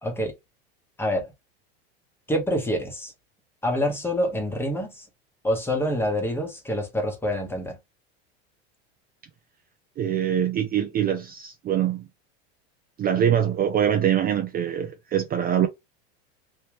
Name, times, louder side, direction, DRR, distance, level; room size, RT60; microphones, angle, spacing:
voice 1, 0.0-0.3 1.0-1.3 2.3-3.1 3.6-5.1 5.4-7.8, equal, 5° left, 1.1 m, -26 dB
voice 2, 10.0-12.0 13.0-15.7, right 9 dB, 30° right, 0.6 m, -23 dB
3.3 x 2.9 x 3.0 m
supercardioid pair, 120°, 32 cm